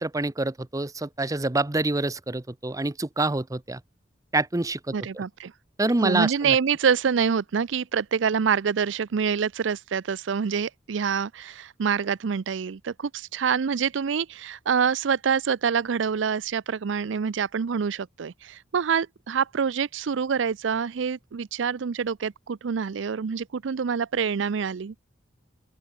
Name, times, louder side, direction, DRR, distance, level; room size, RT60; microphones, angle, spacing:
voice 1, 0.0-3.8 4.3-5.2 5.8-6.6, right 2 dB, 20° right, 0.7 m, -26 dB
voice 2, 4.9-5.5 6.0-24.9, right 6 dB, 75° right, 0.5 m, -26 dB
open air
head